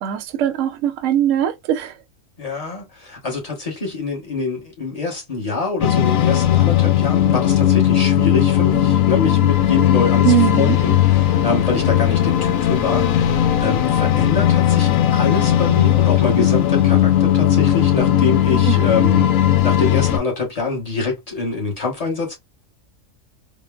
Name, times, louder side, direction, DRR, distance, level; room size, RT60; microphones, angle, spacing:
voice 1, 0.0-2.0 10.2-10.8 18.7-19.1, right 12 dB, 75° right, 0.9 m, -21 dB
voice 2, 2.4-19.3 19.6-22.3, left 4 dB, 30° left, 1.1 m, -25 dB
sound 1, 5.8-20.2, left 11 dB, 90° left, 1.0 m, -17 dB
sound 2, 10.8-18.5, left 1 dB, 55° left, 1.1 m, -41 dB
3.6 x 2.0 x 2.2 m
omnidirectional pair, 1.3 m